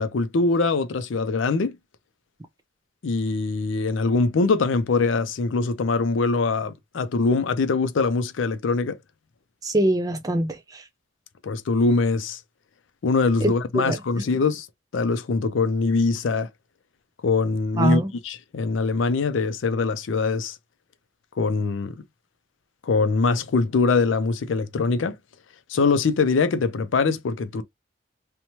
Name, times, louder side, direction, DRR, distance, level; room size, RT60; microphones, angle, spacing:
voice 1, 0.0-1.8 3.0-9.0 11.4-12.4 13.0-14.7 14.9-16.5 17.2-20.6 21.4-22.0 22.8-25.2 25.7-27.6, left 4 dB, 80° left, 0.4 m, -23 dB
voice 2, 9.6-10.8 13.4-14.0 17.8-18.1, right 1 dB, 20° right, 0.4 m, -23 dB
2.9 x 2.2 x 2.7 m
head